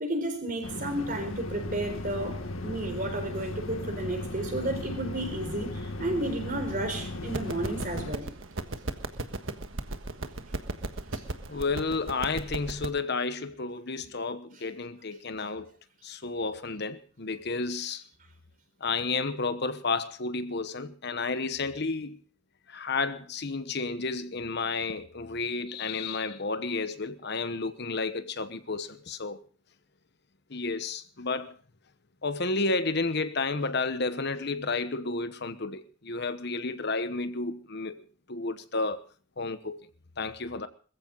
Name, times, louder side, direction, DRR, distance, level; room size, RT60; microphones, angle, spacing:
voice 1, 0.0-8.3 11.1-11.2, right 1 dB, 40° right, 4.2 m, -32 dB
sound 1, 0.6-8.1, left 1 dB, 80° left, 2.0 m, -36 dB
sound 2, 7.3-12.9, right 2 dB, 70° right, 1.4 m, -36 dB
voice 2, 11.5-15.7 16.0-18.0 18.8-22.2 22.7-29.4 30.5-31.5 32.2-38.0 38.3-39.0 39.4-39.9 40.2-40.7, left 3 dB, 55° left, 1.1 m, -31 dB
21.0 x 15.0 x 4.0 m
head